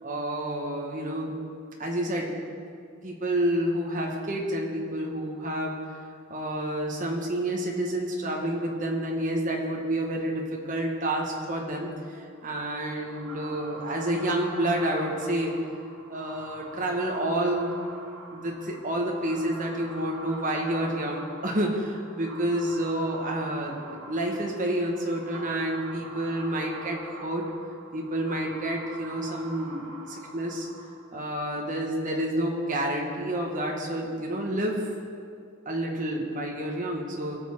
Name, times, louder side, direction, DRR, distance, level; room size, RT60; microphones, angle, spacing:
voice 1, 0.0-1.3 1.8-2.3 3.0-5.7 6.3-15.6 16.1-17.7 18.3-27.4 27.9-30.7 31.1-34.8 35.6-37.4, right 1 dB, 35° right, 0 dB, 1.4 m, -29 dB
sound 1, 12.4-31.3, right 2 dB, 70° right, 1.2 m, -44 dB
19.0 x 6.7 x 3.7 m, 2.3 s
head